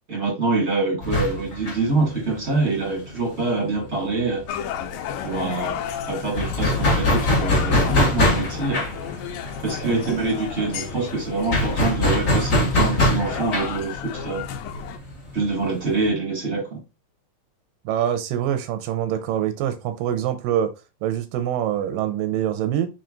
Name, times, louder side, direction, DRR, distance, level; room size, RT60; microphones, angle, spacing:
voice 1, 0.1-4.4 5.2-5.8 6.1-8.8 9.6-14.4 15.3-16.8, right 3 dB, 25° right, -3 dB, 2.0 m, -25 dB
sound 1, 1.0-4.4 4.7-4.8 5.1-16.1, left 1 dB, 75° left, 0.7 m, -24 dB
sound 2, 4.5-15.0, left 8 dB, 90° left, 2.3 m, -33 dB
voice 2, 5.2-5.6 9.8-10.2 17.9-20.7 21.0-22.9, right 10 dB, 90° right, 9 dB, 2.3 m, -25 dB
4.8 x 4.4 x 2.5 m, 0.27 s
omnidirectional pair, 3.9 m